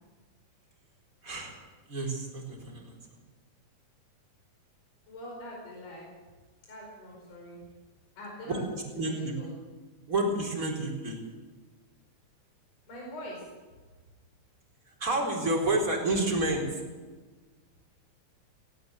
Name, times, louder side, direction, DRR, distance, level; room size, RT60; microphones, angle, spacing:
voice 1, 1.2-3.0 8.5-9.3 10.1-11.2 15.0-16.9, right 2 dB, 25° right, 0 dB, 4.4 m, -30 dB
voice 2, 5.1-6.1 6.7-7.6 8.2-8.6 9.0-9.5 12.8-13.4, equal, 50° left, -3 dB, 6.1 m, -43 dB
18.0 x 18.0 x 8.0 m, 1.3 s
omnidirectional pair, 3.9 m